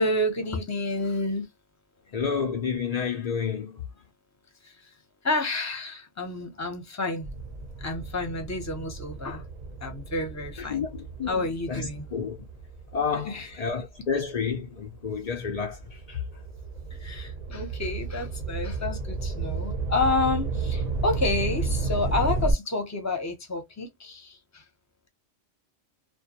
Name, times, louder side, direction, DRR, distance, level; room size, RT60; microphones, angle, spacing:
voice 1, 0.0-1.5 4.6-4.9 5.2-7.3 7.8-9.4 9.8-10.8 11.3-12.1 13.2-13.6 16.9-24.6, left 2 dB, 20° left, 0.5 m, -29 dB
voice 2, 2.1-3.7 10.6-12.4 12.9-16.2, left 6 dB, 80° left, 0.3 m, -30 dB
sound 1, 7.2-14.0 14.5-22.5, right 4 dB, 45° right, 0.6 m, -32 dB
2.2 x 2.2 x 2.7 m
omnidirectional pair, 1.3 m